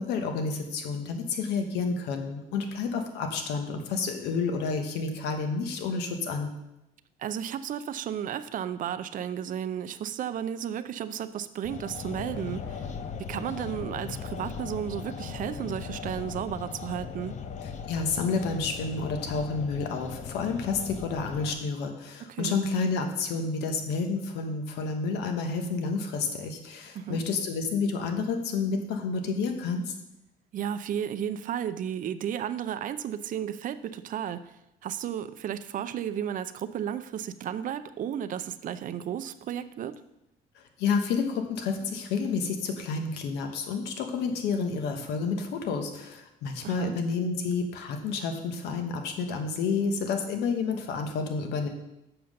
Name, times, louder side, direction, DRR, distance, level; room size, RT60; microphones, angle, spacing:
voice 1, 0.0-6.5 17.9-29.9 40.5-51.7, left 4 dB, 85° left, 5 dB, 1.2 m, -30 dB
voice 2, 7.2-12.9 13.2-17.4 22.3-22.5 26.9-27.2 30.5-40.0 46.6-46.9, right 9 dB, 50° right, 12 dB, 0.5 m, -33 dB
sound 1, 11.6-21.6, left 6 dB, 45° left, 0.7 m, -38 dB
6.9 x 5.6 x 6.4 m, 0.90 s
cardioid pair, 110°, 17 cm